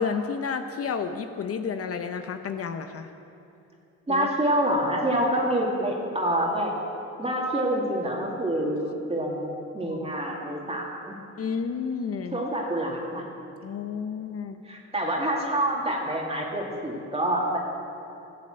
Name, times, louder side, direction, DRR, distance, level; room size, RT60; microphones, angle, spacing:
voice 1, 0.0-3.1 4.1-4.3 11.4-12.4 13.6-14.6, left 6 dB, 50° left, 7 dB, 0.8 m, -31 dB
voice 2, 4.1-6.7 7.2-11.2 12.3-13.2 14.6-17.6, right 1 dB, 20° right, -2 dB, 2.4 m, -27 dB
15.0 x 7.6 x 7.8 m, 2.8 s
cardioid pair, 90°, 30 cm